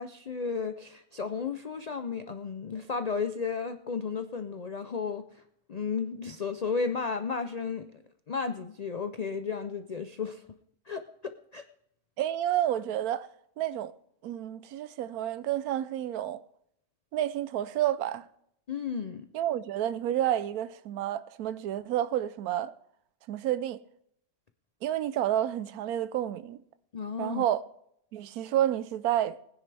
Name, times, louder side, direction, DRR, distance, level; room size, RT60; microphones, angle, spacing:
voice 1, 0.0-5.2 5.7-8.0 8.3-10.4 10.9-11.6 18.7-19.3 26.9-27.4, left 5 dB, 80° left, 0.3 m, -33 dB
voice 2, 12.2-13.3 13.6-13.9 14.2-16.4 17.1-18.3 19.3-22.7 23.3-23.8 24.8-26.6 27.2-27.6 28.1-29.4, right 12 dB, 85° right, 1.1 m, -30 dB
19.5 x 10.0 x 3.3 m
omnidirectional pair, 1.5 m